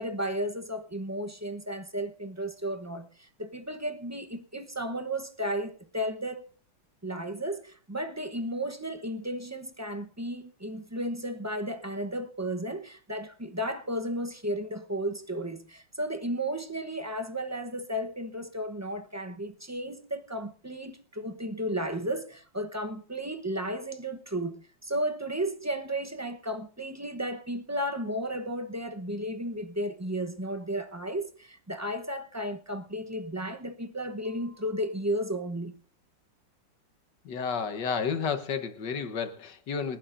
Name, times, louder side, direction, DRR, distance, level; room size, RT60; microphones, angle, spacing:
voice 1, 0.0-6.5 7.0-35.8, right 1 dB, 15° right, 0.5 m, -34 dB
voice 2, 37.2-40.0, left 6 dB, 70° left, 1.8 m, -31 dB
29.0 x 11.5 x 2.6 m
omnidirectional pair, 2.0 m